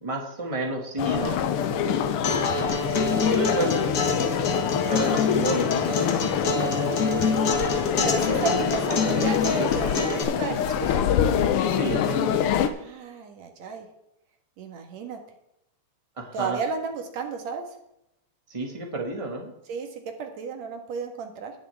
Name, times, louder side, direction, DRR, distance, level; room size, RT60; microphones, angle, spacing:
voice 1, 0.0-1.4 3.3-3.9 4.9-6.2 8.3-8.5 11.7-12.4 16.2-16.6 18.5-19.5, right 2 dB, 15° right, 1 dB, 1.4 m, -30 dB
sound 1, 1.0-12.7, left 8 dB, 75° left, 1.3 m, -25 dB
Acoustic guitar, 2.2-10.2, left 4 dB, 45° left, 1.4 m, -27 dB
voice 2, 2.2-2.5 4.3-4.7 6.4-7.0 8.0-11.0 12.6-13.9 14.6-15.2 16.3-17.6 19.7-21.5, right 5 dB, 70° right, 5 dB, 2.7 m, -33 dB
19.0 x 6.7 x 3.5 m, 0.82 s
omnidirectional pair, 3.3 m